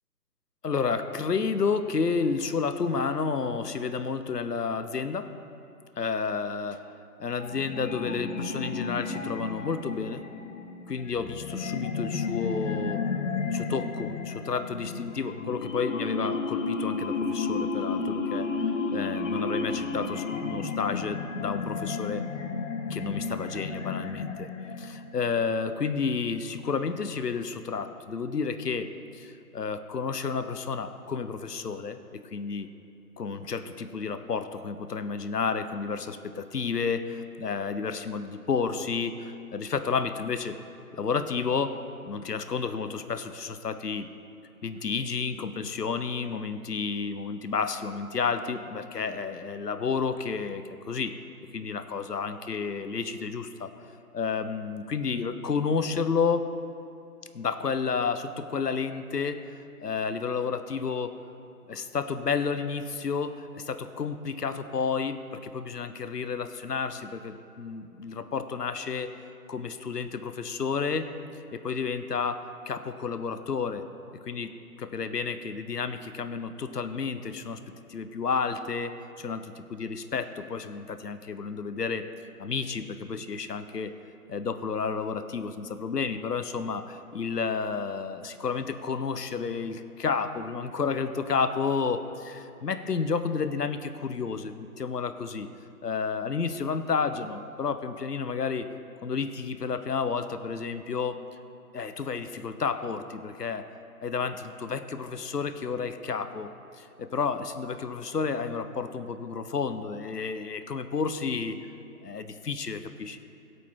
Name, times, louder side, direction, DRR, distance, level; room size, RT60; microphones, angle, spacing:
voice 1, 0.6-5.3 6.0-6.9 7.2-10.2 10.9-13.0 13.5-18.5 18.9-22.3 22.9-24.5 24.8-32.7 33.2-40.6 40.9-41.8 42.1-44.1 44.6-51.2 51.5-53.7 54.1-56.5 57.3-61.2 61.7-69.2 69.5-71.1 71.5-73.9 74.2-77.6 77.9-82.1 82.4-83.9 84.3-95.5 95.8-98.7 99.0-101.2 101.7-103.6 104.0-106.5 106.8-111.6 112.0-113.2, left 5 dB, 75° left, 10 dB, 1.1 m, -31 dB
sound 1, 7.4-25.3, left 4 dB, 50° left, 1.0 m, -32 dB
21.0 x 8.4 x 3.8 m, 2.6 s
figure-of-eight pair, 145°, 47 cm